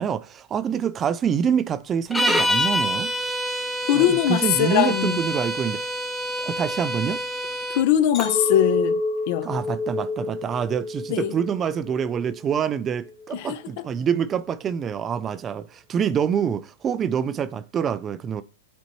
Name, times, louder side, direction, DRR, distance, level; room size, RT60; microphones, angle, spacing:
voice 1, 0.0-3.1 3.9-5.9 6.4-7.2 9.4-18.4, right 8 dB, 20° right, 0.3 m, -26 dB
sound 1, 2.1-7.9, equal, 5° left, 0.7 m, -26 dB
voice 2, 3.9-5.2 7.7-9.0 9.3-9.5 11.1-11.3 13.3-13.6, left 12 dB, 50° left, 0.6 m, -21 dB
Chink clink, 8.1-12.5 12.9-13.4, left 3 dB, 25° left, 1.4 m, -29 dB
10.5 x 4.2 x 3.0 m
hypercardioid pair, 135°, 0 cm